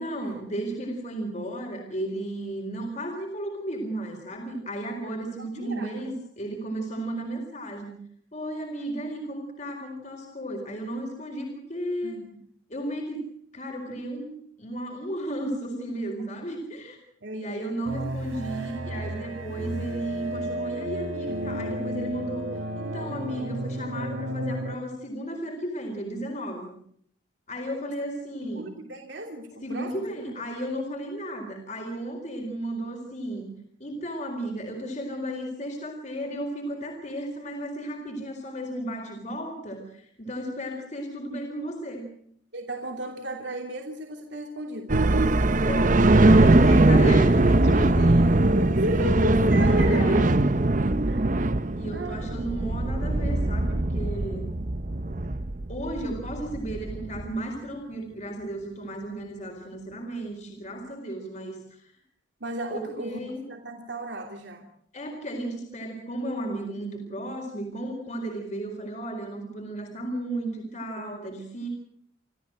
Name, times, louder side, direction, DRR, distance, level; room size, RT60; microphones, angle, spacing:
voice 1, 0.0-8.0 8.3-12.2 12.7-13.3 13.5-14.3 14.6-17.0 17.3-22.5 22.7-26.8 27.5-28.7 29.6-33.5 33.8-42.1 45.6-48.4 49.8-50.3 51.8-54.5 55.7-61.9 62.7-63.4 64.9-71.7, right 1 dB, 35° left, 2 dB, 4.4 m, -34 dB
voice 2, 5.4-6.0 12.0-12.4 15.4-15.5 17.2-17.7 28.4-30.1 40.5-40.6 42.5-45.0 48.1-51.5 51.9-52.3 61.3-61.5 62.4-63.2 63.4-64.7 71.0-71.1, equal, 65° right, 2 dB, 3.0 m, -34 dB
sound 1, 17.9-24.8, right 1 dB, 85° right, 4.1 m, -33 dB
sound 2, 44.9-57.4, right 2 dB, 40° right, 0.8 m, -21 dB
28.5 x 14.5 x 7.8 m, 0.64 s
head